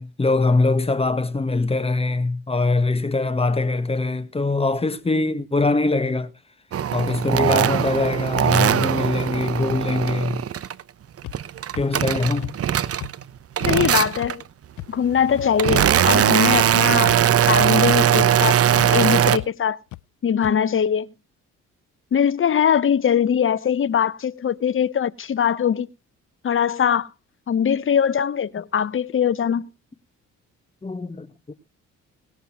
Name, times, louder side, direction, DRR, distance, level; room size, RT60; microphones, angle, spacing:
voice 1, 0.0-6.3 6.9-10.4 11.8-12.5 30.8-31.5, left 3 dB, 20° left, 1.6 m, -22 dB
sound 1, 6.7-10.8 11.2-13.2 13.6-14.4 15.1-19.4, right 10 dB, 50° right, 0.9 m, -20 dB
sound 2, 11.2-11.4 11.7-11.9 12.4-12.5 13.0-13.1 13.6-13.7 14.2-14.3 14.8-14.9 15.4-15.5 16.0-16.1 16.5-16.6 17.0-17.3 17.6-17.7 18.2-18.3 18.8-18.9 19.4-19.5 19.9-20.0 20.4-20.5, left 18 dB, 80° left, 0.6 m, -35 dB
voice 2, 13.7-14.4 14.9-17.2 17.5-19.8 20.2-21.1 22.1-25.9 26.4-27.1 27.5-29.7, left 8 dB, 45° left, 0.9 m, -21 dB
19.0 x 7.0 x 5.8 m
cardioid pair, 90°, 30 cm